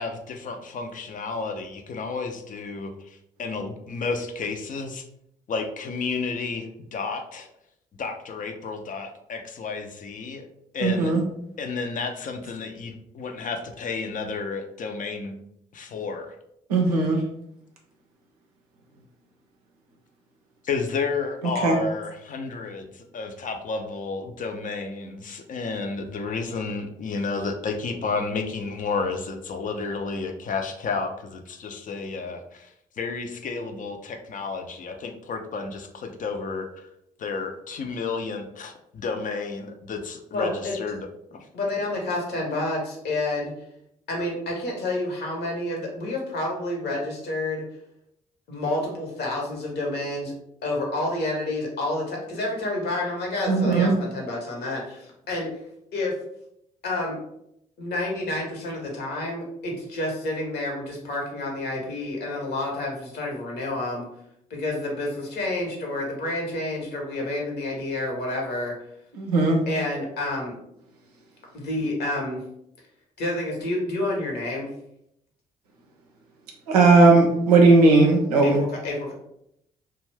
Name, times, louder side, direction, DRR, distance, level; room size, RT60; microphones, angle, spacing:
voice 1, 0.0-5.0 5.5-7.5 8.0-10.5 10.7-11.1 11.6-15.4 15.7-16.4 20.6-36.9 37.2-41.1 41.3-41.5, left 4 dB, 45° left, 5 dB, 0.5 m, -31 dB
voice 2, 10.8-11.2 16.7-17.2 21.6-21.8 53.5-53.9 69.1-69.6 76.7-78.6, right 3 dB, 85° right, 1 dB, 0.5 m, -17 dB
voice 3, 40.3-40.7 41.5-43.5 44.1-47.6 48.5-50.3 50.6-55.5 55.9-56.1 56.8-57.2 57.8-64.0 64.5-68.7 69.7-70.5 71.5-72.4 73.2-74.7 78.4-79.1, left 2 dB, 60° left, -1 dB, 1.0 m, -29 dB
2.5 x 2.2 x 3.3 m, 0.76 s
figure-of-eight pair, 40°, 19 cm